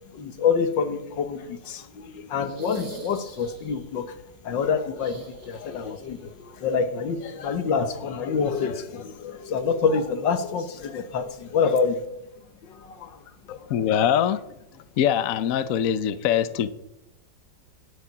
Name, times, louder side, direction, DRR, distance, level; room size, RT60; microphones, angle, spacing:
voice 1, 0.1-4.1 4.4-12.0 12.6-13.2, left 5 dB, 80° left, 10 dB, 1.8 m, -27 dB
sound 1, 2.4-3.8 4.9-6.1 6.4-6.5 8.1-8.2, right 2 dB, 85° right, 3.8 m, -42 dB
voice 2, 13.5-14.4 15.0-16.7, left 9 dB, 60° left, 14 dB, 0.9 m, -23 dB
19.0 x 6.7 x 5.8 m, 0.89 s
omnidirectional pair, 2.0 m